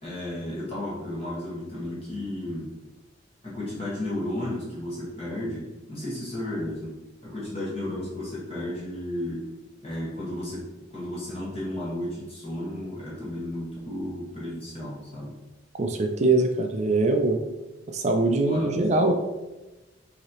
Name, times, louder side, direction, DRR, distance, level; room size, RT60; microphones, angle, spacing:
voice 1, 0.0-2.7 3.4-6.9 7.2-9.5 9.8-15.3 18.5-18.7, left 1 dB, 30° left, -7 dB, 1.5 m, -33 dB
voice 2, 15.7-17.4 17.9-19.1, right 2 dB, 35° right, 4 dB, 0.4 m, -22 dB
6.0 x 2.8 x 2.9 m, 1.1 s
head